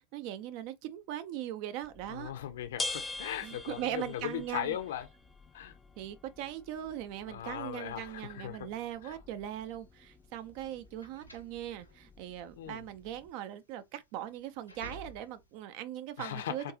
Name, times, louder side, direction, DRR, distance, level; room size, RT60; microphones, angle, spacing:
voice 1, 0.1-2.3 3.4-4.7 6.0-16.7, right 11 dB, 45° right, 0.5 m, -40 dB
sound 1, 1.8-13.3, left 2 dB, 15° left, 0.3 m, -46 dB
voice 2, 2.1-5.1 5.5-5.8 7.3-8.7 9.0-9.2 12.6-12.9 16.2-16.7, left 10 dB, 60° left, 0.6 m, -38 dB
sound 2, 9.6-15.6, right 1 dB, 85° left, 1.1 m, -53 dB
3.8 x 2.6 x 2.7 m
figure-of-eight pair, 90°, 0 cm